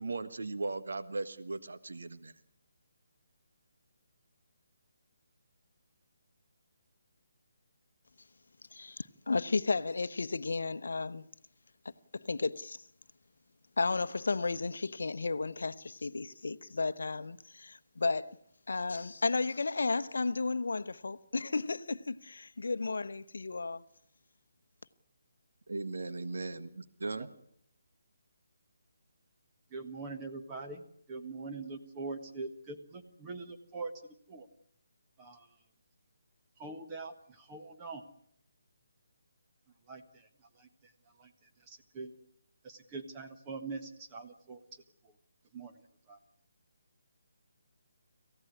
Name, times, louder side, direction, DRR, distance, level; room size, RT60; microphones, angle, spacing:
voice 1, 0.0-2.3 25.7-27.3, right 3 dB, 60° right, 1.5 m, -38 dB
voice 2, 8.7-11.2 12.1-12.8 13.8-18.4 18.7-23.8, left 3 dB, 60° left, 0.9 m, -33 dB
voice 3, 29.7-33.9 34.3-34.5 35.2-35.5 36.6-38.0 39.9-40.3 40.6-40.9 41.2-41.3 41.7-42.1 42.6-44.6 45.5-45.7 46.1-46.2, right 3 dB, 20° right, 1.5 m, -43 dB
26.5 x 15.5 x 9.7 m
figure-of-eight pair, 145°, 0 cm